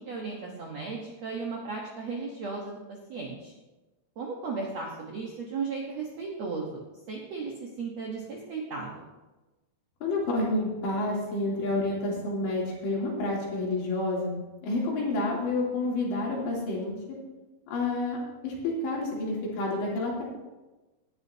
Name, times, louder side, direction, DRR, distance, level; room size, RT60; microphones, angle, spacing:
voice 1, 0.0-3.5 4.2-9.0, right 4 dB, 70° right, -1 dB, 1.6 m, -36 dB
voice 2, 10.0-14.4 14.6-17.0 17.7-18.2 18.4-20.2, left 2 dB, 90° left, -4 dB, 5.4 m, -29 dB
17.5 x 11.0 x 2.8 m, 1.1 s
omnidirectional pair, 4.9 m